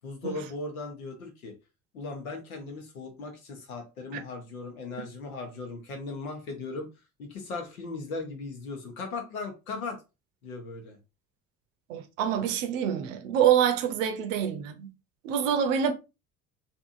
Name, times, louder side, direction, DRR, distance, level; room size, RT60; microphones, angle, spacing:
voice 1, 0.0-1.5 1.9-6.9 7.2-10.0 10.4-11.0, left 3 dB, 75° left, 1.1 m, -37 dB
voice 2, 11.9-14.9 15.2-15.9, right 9 dB, 65° right, 0.7 m, -26 dB
3.5 x 2.9 x 2.5 m
figure-of-eight pair, 55°, 42 cm